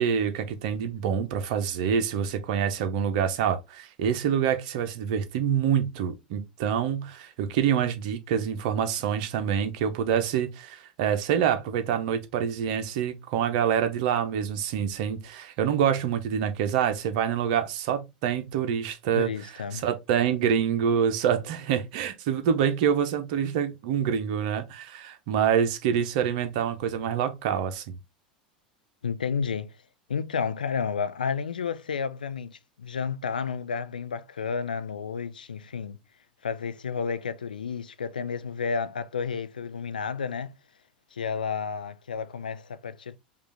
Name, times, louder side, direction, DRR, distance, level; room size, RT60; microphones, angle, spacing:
voice 1, 0.0-19.3 19.7-28.0, right 8 dB, 55° right, 0.8 m, -26 dB
voice 2, 19.1-19.8 29.0-29.7 30.1-36.0 36.4-40.5 41.1-43.2, left 6 dB, 80° left, 0.4 m, -31 dB
5.1 x 2.5 x 3.3 m
figure-of-eight pair, 85°, 5 cm